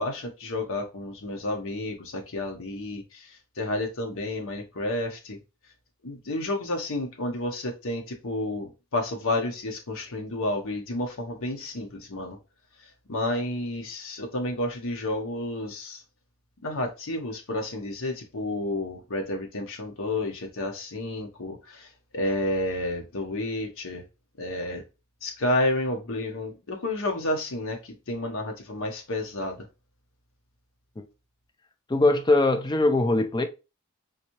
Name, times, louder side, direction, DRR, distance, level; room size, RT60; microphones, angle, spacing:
voice 1, 0.0-5.4 6.0-12.4 13.1-16.0 16.6-24.0 24.4-24.8 25.2-29.6, left 1 dB, 65° left, 0.9 m, -30 dB
voice 2, 31.9-33.5, left 2 dB, 20° left, 0.4 m, -21 dB
3.9 x 2.7 x 2.9 m
head